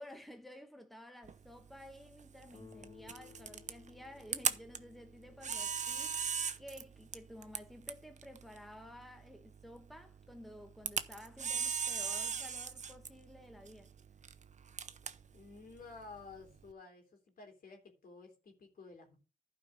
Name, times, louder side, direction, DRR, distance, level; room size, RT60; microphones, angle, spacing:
voice 1, 0.0-13.9, left 1 dB, ahead, 1.3 m, -53 dB
Camera, 1.2-16.7, right 6 dB, 55° right, 0.7 m, -41 dB
Guitar, 2.5-7.3, left 7 dB, 25° left, 1.2 m, -61 dB
voice 2, 15.3-19.2, left 4 dB, 75° left, 3.4 m, -53 dB
11.5 x 5.3 x 5.3 m
cardioid pair, 80°, 15 cm